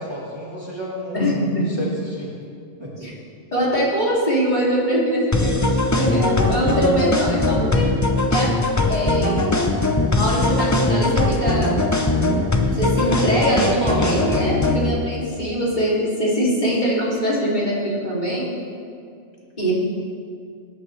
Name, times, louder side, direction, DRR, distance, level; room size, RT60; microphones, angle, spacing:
voice 1, 0.0-2.3 2.8-3.1 13.0-14.0, equal, 20° right, -5 dB, 1.6 m, -30 dB
voice 2, 1.1-1.6 3.0-3.1 3.5-7.9 8.3-8.5 8.9-9.5 10.1-11.8 12.7-18.5 19.6-19.7, equal, 35° left, -6 dB, 2.9 m, -22 dB
sound 1, 5.3-14.9, left 2 dB, 20° left, 0.5 m, -20 dB
19.0 x 10.0 x 3.3 m, 2.3 s
omnidirectional pair, 1.3 m